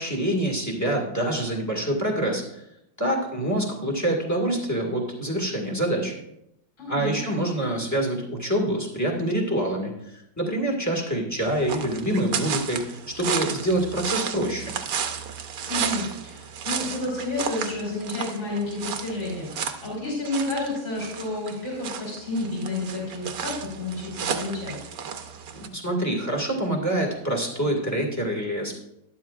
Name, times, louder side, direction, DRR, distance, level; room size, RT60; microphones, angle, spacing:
voice 1, 0.0-2.4 3.0-6.2 6.9-9.9 10.4-14.7 25.5-28.8, right 1 dB, 10° left, 0 dB, 1.8 m, -26 dB
voice 2, 6.8-7.2 15.7-24.8, left 2 dB, 45° left, -6 dB, 4.3 m, -30 dB
sound 1, 11.4-25.7, right 7 dB, 65° right, 1.2 m, -33 dB
12.0 x 11.5 x 2.5 m, 0.82 s
omnidirectional pair, 1.7 m